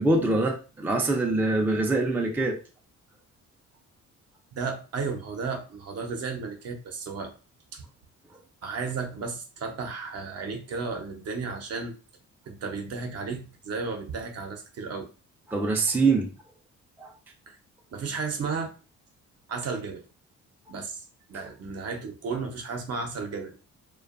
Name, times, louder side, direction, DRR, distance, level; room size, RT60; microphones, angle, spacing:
voice 1, 0.0-2.6 15.5-16.3 17.0-17.1, right 2 dB, 5° right, 0.4 m, -24 dB
voice 2, 4.5-7.3 7.7-7.8 8.6-11.9 12.5-15.1 17.5-17.6 17.9-18.7 19.5-20.0 20.7-21.0 21.3-23.6, right 4 dB, 55° right, 0.7 m, -33 dB
2.5 x 2.3 x 2.4 m
cardioid pair, 90°, 30 cm